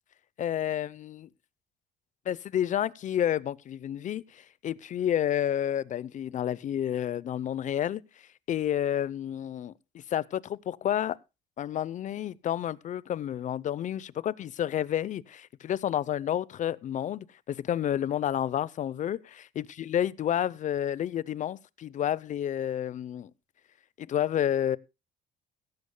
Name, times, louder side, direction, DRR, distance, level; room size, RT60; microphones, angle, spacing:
voice 1, 0.4-1.3 2.3-8.0 8.5-11.2 11.6-23.3 24.0-24.8, left 10 dB, 45° left, 0.6 m, -30 dB
16.5 x 14.5 x 2.2 m
cardioid pair, 110°, 17 cm